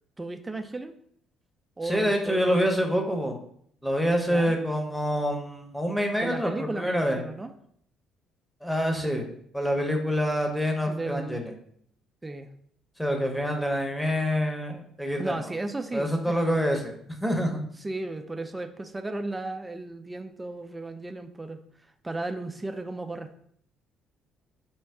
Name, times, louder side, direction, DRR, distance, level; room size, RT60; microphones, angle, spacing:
voice 1, 0.2-0.9 1.8-2.7 4.2-4.5 6.2-7.5 10.9-11.4 12.2-12.5 15.2-16.6 17.8-21.6 22.0-23.4, right 2 dB, 15° right, 7 dB, 0.4 m, -35 dB
voice 2, 1.8-3.3 3.8-7.2 8.6-9.3 9.5-11.5 13.0-15.5 15.9-16.9 17.2-17.6, equal, ahead, 2 dB, 0.8 m, -26 dB
4.5 x 2.2 x 3.6 m, 0.66 s
figure-of-eight pair, 50°, 0 cm